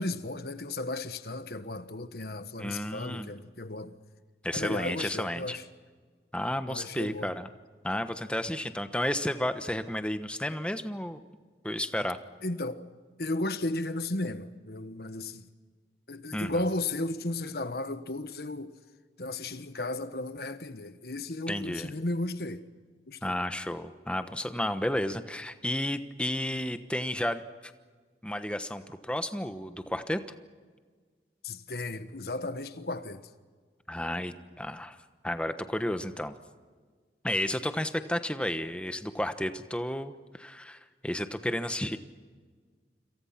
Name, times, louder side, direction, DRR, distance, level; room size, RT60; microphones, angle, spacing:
voice 1, 0.0-4.0 4.5-5.6 6.7-7.3 12.4-12.9 13.2-15.4 16.1-18.8 19.2-22.7 23.1-23.4 31.4-33.3, left 2 dB, 60° left, 1.4 m, -34 dB
voice 2, 2.6-3.3 4.4-5.6 6.3-7.5 7.8-11.2 11.6-12.2 16.3-16.5 21.5-21.9 23.2-27.7 28.2-30.2 33.9-35.0 35.2-36.4 37.2-42.0, left 1 dB, 5° left, 1.1 m, -32 dB
28.5 x 27.0 x 5.9 m
head